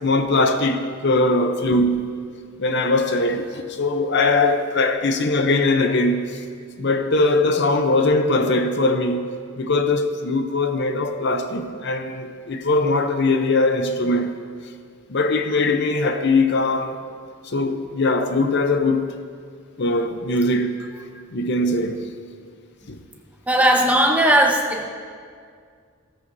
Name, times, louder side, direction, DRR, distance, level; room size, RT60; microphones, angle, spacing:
voice 1, 0.0-2.1 2.6-6.4 6.8-14.3 15.1-17.0 17.4-19.0 19.8-20.9 21.3-22.1 22.9-23.0, left 2 dB, 55° left, 0.7 m, -21 dB
voice 2, 23.5-24.9, right 1 dB, 5° right, 1.0 m, -17 dB
16.5 x 13.5 x 2.7 m
head